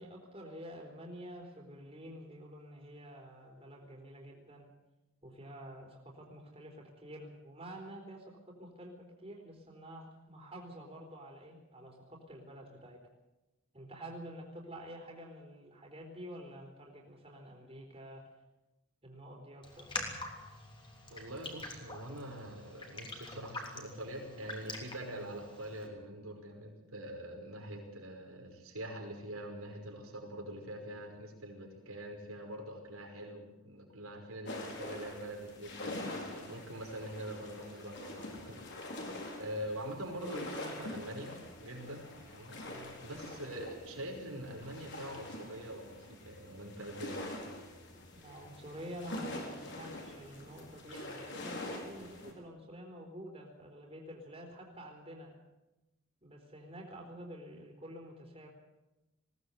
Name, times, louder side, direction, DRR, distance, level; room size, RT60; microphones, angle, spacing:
voice 1, 0.0-4.7 5.2-13.0 13.7-18.3 19.0-19.9 42.6-42.9 48.2-55.4 56.2-58.5, equal, 25° right, 0 dB, 4.0 m, -49 dB
Raindrop, 19.6-25.9, left 2 dB, 20° left, 3.4 m, -45 dB
voice 2, 21.1-47.3, right 1 dB, 85° right, 2 dB, 5.3 m, -44 dB
sound 1, 34.5-52.3, left 1 dB, 55° left, 4.4 m, -45 dB
20.5 x 18.0 x 8.2 m, 1.0 s
head